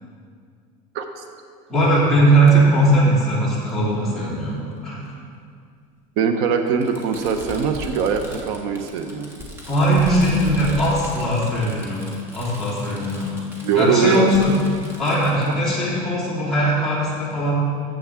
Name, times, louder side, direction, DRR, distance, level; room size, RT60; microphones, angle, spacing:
voice 1, 1.7-5.0 9.7-13.3 13.7-14.5 15.0-17.5, right 1 dB, ahead, -10 dB, 2.6 m, -19 dB
Fireworks, 2.5-2.6 3.7-3.8 5.1-5.2 6.8-15.5, left 1 dB, 15° right, 1.1 m, -37 dB
voice 2, 6.2-9.3 13.6-14.3, right 6 dB, 60° right, 6 dB, 0.7 m, -21 dB
13.0 x 7.4 x 3.6 m, 2.2 s
cardioid pair, 175°, 18 cm